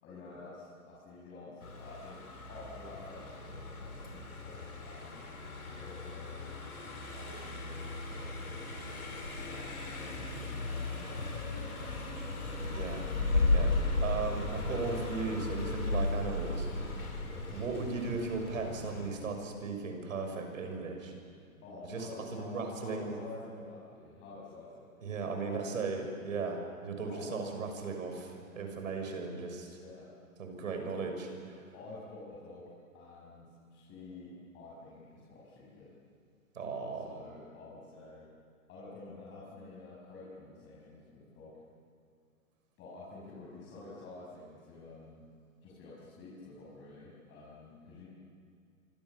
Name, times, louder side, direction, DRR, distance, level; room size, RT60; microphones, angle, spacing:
voice 1, 0.0-2.2 2.5-4.6 4.8-5.3 5.6-6.5 7.1-9.1 9.4-11.4 11.8-12.1 17.2-17.6 21.6-24.9 25.4-25.9 27.1-27.5 29.7-30.1 31.7-35.9 36.9-38.3 38.7-41.5 42.8-45.3 45.6-48.1, left 3 dB, 25° left, -6 dB, 6.8 m, -49 dB
Car passing by, 1.6-19.1, left 2 dB, 90° left, 6.0 m, -35 dB
voice 2, 12.6-13.0 13.3-13.7 14.0-16.9 17.5-21.1 21.8-23.2 25.0-29.7 30.4-31.6 36.5-37.1, right 4 dB, 65° right, 4 dB, 6.6 m, -37 dB
26.5 x 25.5 x 7.3 m, 2.3 s
hypercardioid pair, 130°, 43 cm